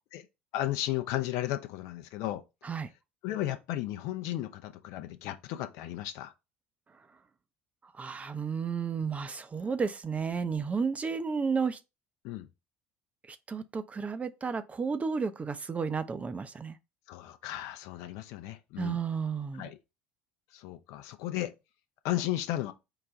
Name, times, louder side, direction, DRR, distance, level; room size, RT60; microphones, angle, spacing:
voice 1, 0.5-2.4 3.2-6.3 12.2-12.5 17.1-19.0 19.5-19.8 20.5-21.5 22.0-22.7, left 14 dB, 55° left, 0.5 m, -34 dB
voice 2, 7.8-11.8 13.3-16.8 18.8-19.7, right 5 dB, 25° right, 0.4 m, -32 dB
4.7 x 2.2 x 3.7 m
figure-of-eight pair, 60°, 6 cm